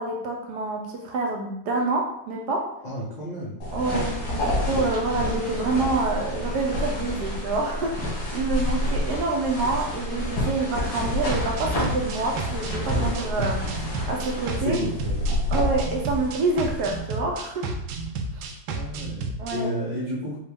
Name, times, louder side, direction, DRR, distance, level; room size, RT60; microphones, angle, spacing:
voice 1, 0.0-2.7 3.7-13.6 14.1-14.8 15.5-17.7 18.3-18.5 19.4-19.8, right 3 dB, 70° right, 1 dB, 1.1 m, -27 dB
voice 2, 2.8-3.5 13.4-13.5 14.6-15.4 18.7-20.4, equal, 65° left, -7 dB, 0.4 m, -31 dB
sound 1, 3.6-17.0, left 1 dB, 85° left, 2.3 m, -29 dB
sound 2, 11.3-19.6, right 3 dB, 85° right, 1.4 m, -32 dB
5.2 x 2.4 x 3.4 m, 0.79 s
omnidirectional pair, 2.1 m